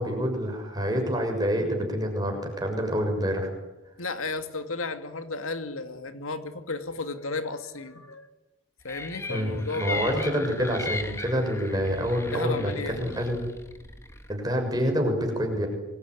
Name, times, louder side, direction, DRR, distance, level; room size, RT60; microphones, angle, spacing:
voice 1, 0.0-3.5 9.3-13.5 14.3-15.7, equal, 20° right, 3 dB, 6.8 m, -27 dB
voice 2, 4.0-8.3 8.8-10.4 12.3-13.0, left 3 dB, 85° left, 8 dB, 2.5 m, -33 dB
sound 1, 8.9-14.3, left 3 dB, 15° left, 2.5 m, -37 dB
26.5 x 22.0 x 9.9 m, 1.0 s
head